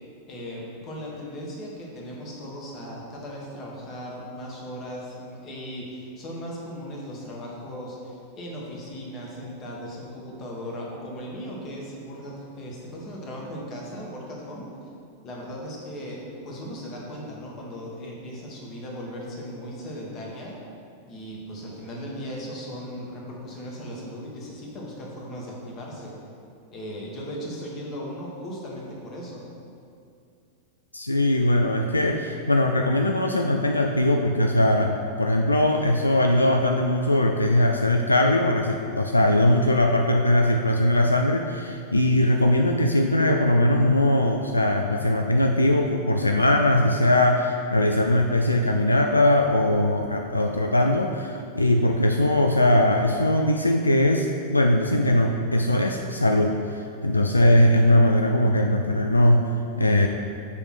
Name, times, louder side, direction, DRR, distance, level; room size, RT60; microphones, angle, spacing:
voice 1, 0.3-14.7 15.2-20.6 21.1-26.1 26.7-29.4, equal, 35° left, -3 dB, 1.6 m, -37 dB
voice 2, 30.9-60.1, left 1 dB, 85° left, 3 dB, 0.3 m, -20 dB
6.9 x 3.4 x 6.2 m, 2.4 s
figure-of-eight pair, 90°, 0 cm